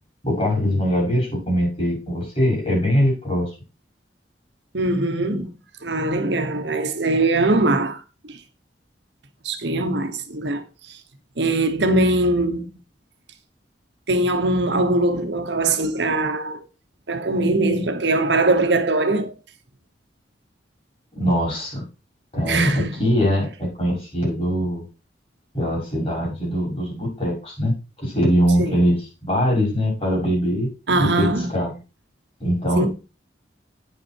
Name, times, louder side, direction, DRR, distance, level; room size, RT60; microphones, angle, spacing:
voice 1, 0.2-3.5 21.1-21.8 22.3-24.8 25.5-27.7 28.0-30.7 31.0-31.3 31.5-31.7 32.4-32.9, equal, 35° left, 6.2 m, -22 dB
voice 2, 4.7-5.5 5.8-8.4 9.4-11.0 11.4-12.7 14.1-16.6 17.1-19.3 22.5-22.9 28.6-28.9 30.9-31.5 32.8-32.9, right 2 dB, 70° right, 1.2 m, -21 dB
9.3 x 6.0 x 4.5 m
head